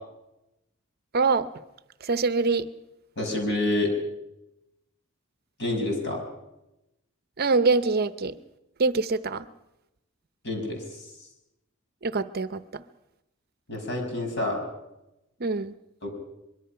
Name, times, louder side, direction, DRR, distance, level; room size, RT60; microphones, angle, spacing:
voice 1, 1.1-1.5 2.0-2.7 7.4-8.3 8.8-9.4 12.0-12.8 15.4-15.7, right 4 dB, 50° right, 13 dB, 0.7 m, -24 dB
voice 2, 3.2-3.9 5.6-6.2 10.4-10.8 13.7-14.6 16.0-16.1, left 1 dB, 55° left, 3 dB, 5.9 m, -27 dB
23.5 x 22.5 x 5.8 m, 0.90 s
head